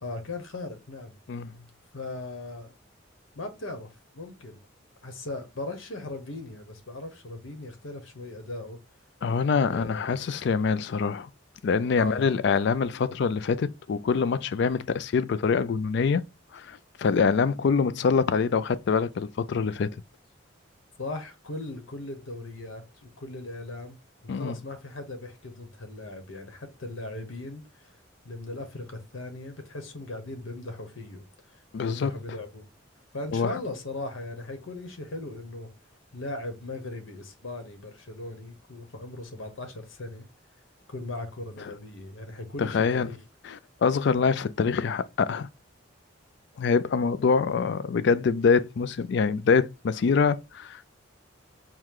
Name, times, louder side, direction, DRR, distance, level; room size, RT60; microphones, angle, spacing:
voice 1, 0.0-1.1 1.9-2.7 3.3-4.6 5.0-8.8 9.7-10.2 12.0-12.3 21.0-24.0 24.3-27.9 28.2-31.3 31.8-32.7 33.1-35.7 36.1-40.3 40.9-43.2, left 2 dB, 80° left, 1.1 m, -38 dB
voice 2, 9.2-11.3 11.6-16.2 16.5-19.9 24.3-24.6 31.7-32.1 33.3-33.5 42.6-43.1 43.4-45.5 46.6-51.0, left 5 dB, 60° left, 0.3 m, -25 dB
4.7 x 2.2 x 3.6 m
head